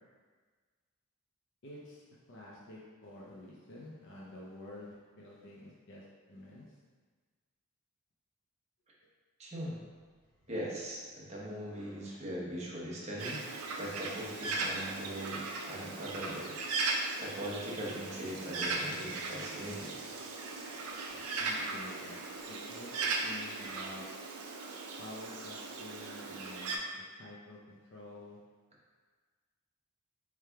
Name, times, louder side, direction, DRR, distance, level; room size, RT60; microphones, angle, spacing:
voice 1, 1.6-6.6 21.0-22.2 22.5-24.1 25.0-28.4, left 1 dB, 60° left, -4 dB, 0.6 m, -49 dB
voice 2, 9.4-9.8 10.5-16.6 16.9-20.0, equal, 30° right, -5 dB, 0.8 m, -40 dB
sound 1, 10.0-23.9, left 1 dB, 20° left, 1.1 m, -60 dB
Bird, 13.2-26.8, right 3 dB, 85° right, 0.5 m, -38 dB
3.4 x 3.2 x 3.4 m, 1.5 s
head